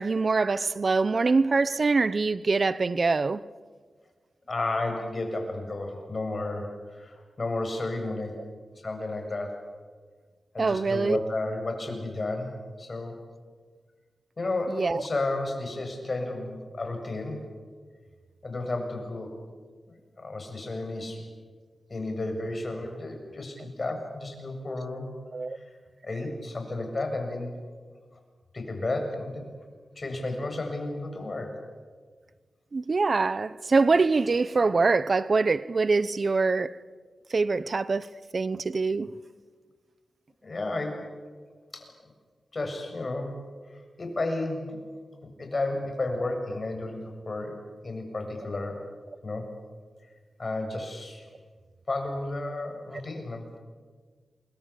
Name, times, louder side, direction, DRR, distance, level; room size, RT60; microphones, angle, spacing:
voice 1, 0.0-3.4 10.6-11.2 14.7-15.0 25.3-25.6 32.7-36.8 37.3-39.1, right 4 dB, 50° right, 0.7 m, -24 dB
voice 2, 4.5-8.3 8.8-9.5 10.5-12.5 12.8-13.2 14.4-17.4 18.4-19.3 19.9-21.2 21.9-25.1 25.5-25.7 26.0-27.5 28.5-29.4 30.0-31.5 40.4-41.0 41.7-41.8 42.5-43.3 44.0-44.8 45.4-47.5 47.8-48.8 49.2-49.5 50.4-51.3 51.9-53.6, left 2 dB, 40° left, 7.6 m, -32 dB
28.0 x 22.5 x 8.5 m
cardioid pair, 65°, 0 cm